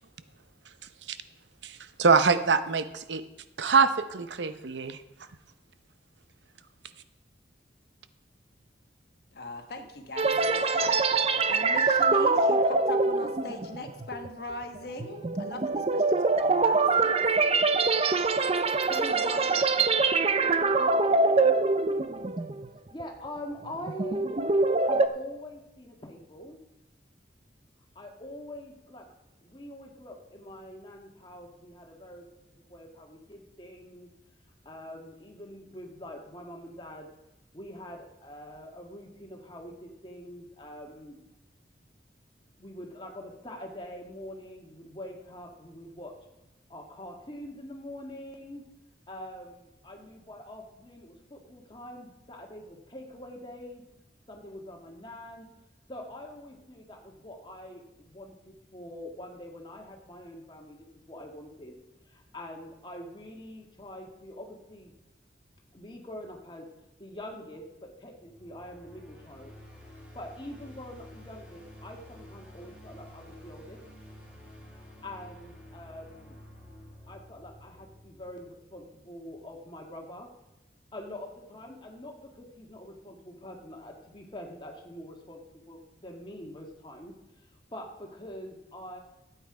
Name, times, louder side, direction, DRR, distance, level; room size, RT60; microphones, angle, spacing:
voice 1, 1.6-3.2 3.6-5.0, right 5 dB, 80° right, 11 dB, 0.7 m, -24 dB
voice 2, 9.3-11.0 11.5-17.1, left 2 dB, 60° left, 5 dB, 1.3 m, -40 dB
sound 1, 10.2-22.7 23.0-23.3 23.7-25.1, right 3 dB, 35° right, 0.5 m, -24 dB
voice 3, 18.9-21.6 22.9-24.2 24.8-26.6 27.9-29.0 29.4-32.3 32.7-34.1 34.6-37.1 37.5-41.2 42.6-46.1 46.7-48.6 49.1-53.8 54.3-55.5 55.9-61.8 62.1-64.9 65.7-66.7 67.0-69.5 70.1-73.8 74.7-76.4 77.1-80.3 80.9-87.1 87.4-89.0, left 1 dB, 25° left, 1 dB, 1.7 m, -44 dB
sound 2, 68.1-79.1, equal, 10° right, 2.9 m, -50 dB
12.5 x 8.5 x 4.8 m, 0.97 s
head